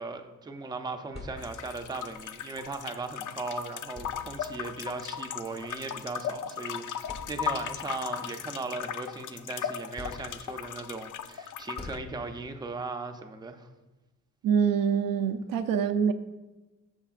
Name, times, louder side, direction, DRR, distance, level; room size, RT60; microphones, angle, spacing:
voice 1, 0.0-13.7, right 3 dB, 10° right, 5 dB, 0.5 m, -38 dB
sound 1, 0.8-1.9 3.2-3.3 3.8-4.7 5.8-6.0 6.5-6.6 7.0-7.8 8.3-9.4 10.0-10.8 11.8-12.7, left 3 dB, 30° left, 1.1 m, -46 dB
sound 2, 1.4-12.0, left 8 dB, 65° left, 0.5 m, -37 dB
voice 2, 14.4-16.1, right 7 dB, 80° right, 9 dB, 0.6 m, -25 dB
13.5 x 6.4 x 2.5 m, 1.1 s
cardioid pair, 135°, 33 cm